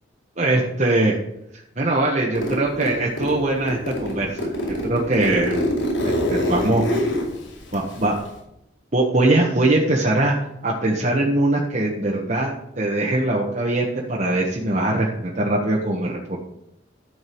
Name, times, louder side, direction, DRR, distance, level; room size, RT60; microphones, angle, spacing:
voice 1, 0.4-1.1 1.8-4.5 4.8-5.7 6.0-6.8 7.7-8.2 8.9-10.3 10.6-16.4, right 2 dB, 40° right, -2 dB, 1.5 m, -21 dB
Zipper (clothing), 2.3-3.4 3.7-8.4, left 1 dB, 80° left, 4.7 m, -25 dB
12.5 x 5.3 x 7.9 m, 0.82 s
head